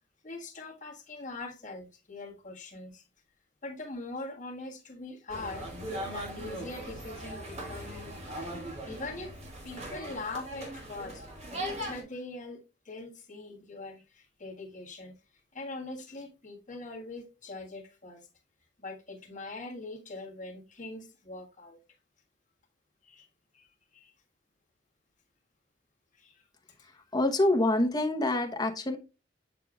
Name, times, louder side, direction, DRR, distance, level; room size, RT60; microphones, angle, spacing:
voice 1, 0.2-3.0 3.6-5.7 6.1-8.2 8.6-9.4 9.6-15.2 15.5-18.3 18.8-21.8 23.0-23.3 23.5-23.7 23.9-24.1 26.1-26.4, left 3 dB, 45° left, -1 dB, 1.7 m, -42 dB
sound 1, 5.3-12.0, right 1 dB, 40° right, 2.1 m, -39 dB
voice 2, 26.8-29.0, left 1 dB, 25° left, 4 dB, 1.0 m, -26 dB
6.8 x 6.5 x 2.4 m, 0.29 s
head